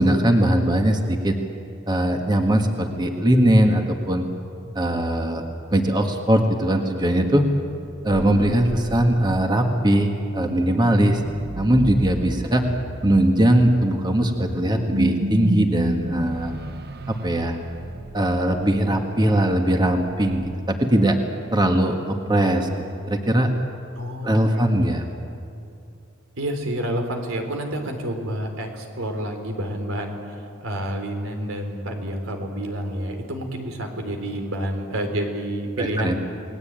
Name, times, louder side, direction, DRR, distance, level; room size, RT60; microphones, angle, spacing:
voice 1, 0.0-1.4 1.9-4.2 4.8-5.4 5.7-7.4 8.0-11.2 11.6-12.6 13.0-16.5 17.1-17.6 18.1-21.2 21.5-22.7 23.1-23.5 24.2-25.0 35.8-36.2, right 1 dB, 20° right, 3 dB, 1.7 m, -20 dB
sound 1, 8.1-21.3, right 1 dB, 55° right, 1.0 m, -33 dB
voice 2, 24.0-24.6 26.4-36.2, right 1 dB, 85° right, 4 dB, 3.9 m, -29 dB
29.5 x 19.5 x 9.0 m, 2.6 s
head